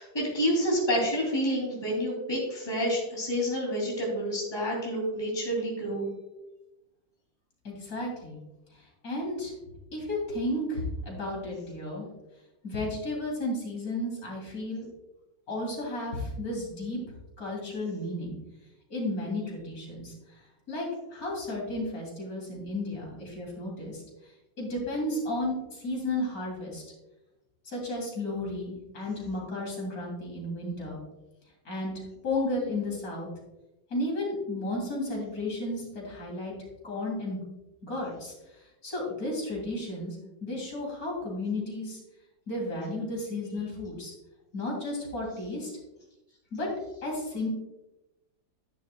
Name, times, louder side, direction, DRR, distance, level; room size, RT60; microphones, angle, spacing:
voice 1, 0.0-6.2, equal, 15° left, -3 dB, 2.8 m, -29 dB
voice 2, 7.6-8.4 8.7-9.5 9.9-12.0 12.6-14.9 15.5-17.0 17.4-18.4 18.9-20.4 20.7-24.3 24.6-26.8 27.6-31.0 31.6-33.3 33.9-36.5 36.8-37.4 37.8-38.3 38.8-42.0 42.5-44.1 44.5-45.7 46.5-46.7 47.0-47.5, left 1 dB, 50° left, -2 dB, 3.3 m, -33 dB
10.5 x 10.5 x 2.3 m, 0.98 s
omnidirectional pair, 2.0 m